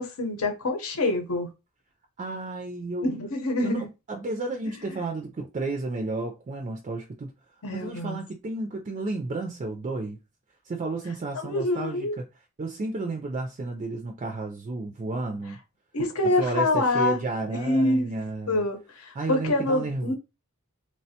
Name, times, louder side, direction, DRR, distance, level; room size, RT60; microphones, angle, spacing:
voice 1, 0.0-1.5 3.0-3.9 4.7-4.8 7.6-8.2 11.3-12.2 15.9-17.2 17.5-18.1 18.5-20.1, left 2 dB, 70° left, 0.8 m, -26 dB
voice 2, 2.2-3.1 3.6-7.3 7.7-10.2 10.7-12.3 12.6-15.6 16.2-18.6 19.2-20.1, right 2 dB, 35° right, 0.3 m, -32 dB
3.2 x 2.1 x 2.8 m
head